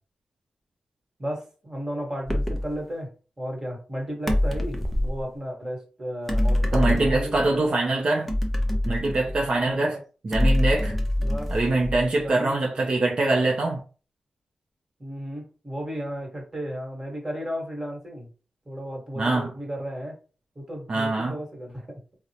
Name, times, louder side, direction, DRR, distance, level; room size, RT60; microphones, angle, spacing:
voice 1, 1.2-7.8 9.8-10.0 11.2-11.5 12.1-12.6 15.0-18.3 18.6-20.2 20.5-22.0, equal, 20° right, 1.3 m, -34 dB
sound 1, 2.3-2.7 4.3-5.2 6.3-7.5 8.3-9.6 10.3-12.2, left 1 dB, 5° left, 0.7 m, -25 dB
voice 2, 6.7-8.3 8.9-10.0 10.2-11.0 11.5-13.8 19.2-19.5 20.9-21.4, right 2 dB, 45° right, 0.5 m, -24 dB
3.8 x 2.1 x 2.8 m
wide cardioid pair, 100°, 2 cm